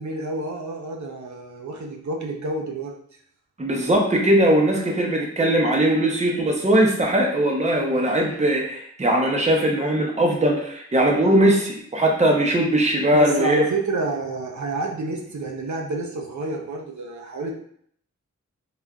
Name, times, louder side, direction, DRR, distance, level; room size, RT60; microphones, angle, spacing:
voice 1, 0.0-3.0 13.1-17.5, right 2 dB, 70° right, 0 dB, 0.6 m, -29 dB
voice 2, 3.6-13.6, right 1 dB, 20° right, 0 dB, 0.6 m, -20 dB
3.6 x 2.4 x 2.2 m, 0.63 s
wide cardioid pair, 65°, 30 cm